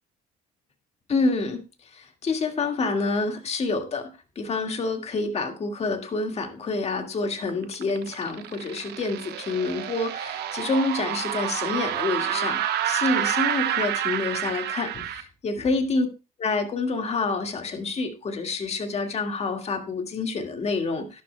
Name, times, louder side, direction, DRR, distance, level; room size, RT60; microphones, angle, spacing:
voice 1, 1.1-1.6 1.9-4.1 4.4-16.1 16.4-21.2, left 3 dB, 40° left, 5 dB, 1.9 m, -28 dB
sound 1, 7.5-15.2, right 11 dB, 75° right, 1.2 m, -29 dB
12.0 x 12.0 x 2.3 m, 0.30 s
cardioid pair, 110°, 17 cm